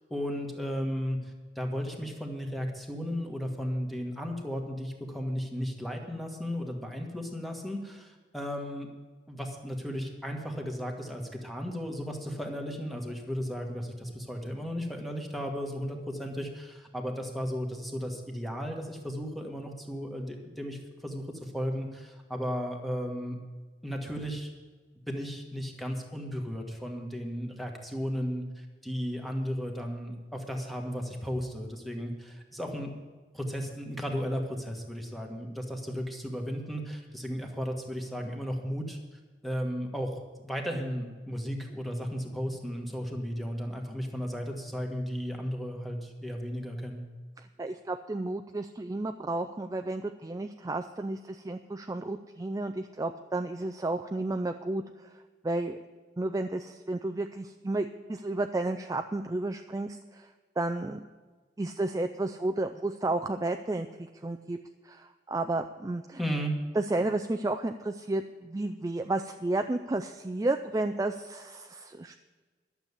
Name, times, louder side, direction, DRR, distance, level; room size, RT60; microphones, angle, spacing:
voice 1, 0.1-1.2 1.5-8.9 9.3-23.4 23.8-24.5 25.1-32.9 33.3-39.0 39.4-40.1 40.4-47.0 66.2-66.5, equal, ahead, 1 dB, 1.5 m, -35 dB
voice 2, 47.4-55.1 55.4-55.8 56.2-60.3 60.6-61.0 61.6-64.6 64.8-66.2 66.8-72.2, right 2 dB, 20° right, 6 dB, 0.4 m, -32 dB
11.5 x 7.1 x 8.2 m, 1.4 s
head